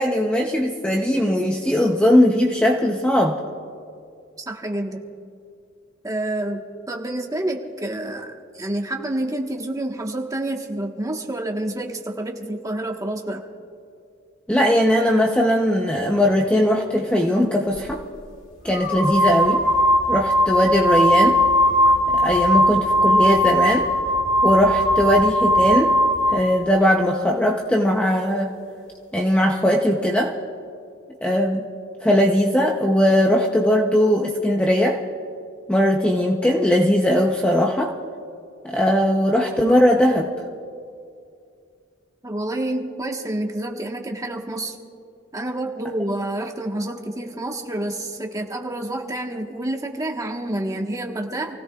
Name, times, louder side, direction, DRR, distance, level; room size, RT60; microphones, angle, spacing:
voice 1, 0.0-3.4 14.5-18.0 18.6-19.6 20.1-21.4 22.1-23.9 24.4-25.9 26.3-28.5 29.1-30.3 31.2-31.6 32.0-35.0 35.7-37.9 38.6-40.3, equal, 5° left, 0 dB, 0.7 m, -19 dB
voice 2, 4.5-5.0 6.0-13.4 42.2-44.7 45.3-51.5, right 1 dB, 15° right, 1 dB, 1.3 m, -28 dB
sound 1, 17.8-17.9 18.7-26.5, equal, 85° left, 1.7 m, -19 dB
28.5 x 17.0 x 2.4 m, 2.4 s
head